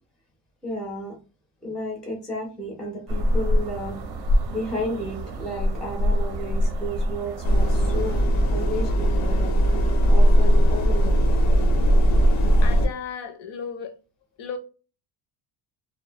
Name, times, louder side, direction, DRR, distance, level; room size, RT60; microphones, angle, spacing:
voice 1, 0.6-1.2 1.6-8.2 8.5-9.5 10.1-11.2, equal, ahead, 0.3 m, -32 dB
sound 1, 3.1-8.2, equal, 50° right, 0.5 m, -26 dB
sound 2, 7.4-12.9, equal, 90° left, 0.9 m, -19 dB
voice 2, 12.6-13.9 14.4-14.6, left 6 dB, 55° left, 0.5 m, -34 dB
2.5 x 2.1 x 2.6 m
cardioid pair, 180°, 50 cm